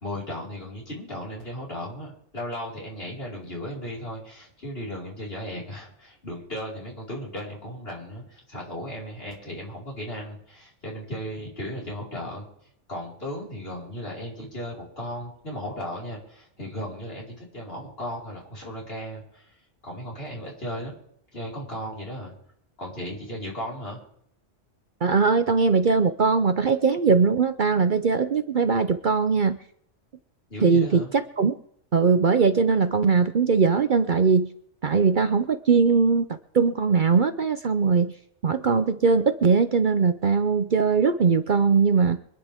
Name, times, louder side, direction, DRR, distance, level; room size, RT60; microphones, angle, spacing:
voice 1, 0.0-12.5 12.9-19.5 19.8-20.9 21.3-22.3 22.8-24.0 30.5-31.1, equal, 55° left, -4 dB, 5.0 m, -36 dB
voice 2, 25.0-29.6 30.6-31.6 31.9-34.5 34.8-36.3 36.5-38.1 38.4-42.2, right 5 dB, 50° right, 10 dB, 0.8 m, -20 dB
25.0 x 10.5 x 3.6 m, 0.69 s
omnidirectional pair, 1.2 m